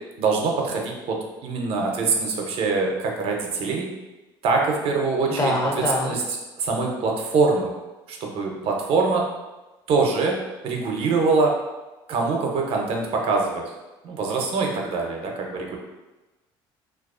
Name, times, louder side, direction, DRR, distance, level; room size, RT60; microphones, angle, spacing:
voice 1, 0.2-3.9 4.4-5.5 6.0-6.2 6.6-7.7 8.1-9.2 9.9-10.3 10.6-11.5 12.1-13.6 14.0-15.8, right 4 dB, 65° right, 1 dB, 0.5 m, -23 dB
voice 2, 5.3-6.1, left 1 dB, 30° left, 0 dB, 0.5 m, -24 dB
2.3 x 2.3 x 2.4 m, 1.1 s
supercardioid pair, 90°, 11 cm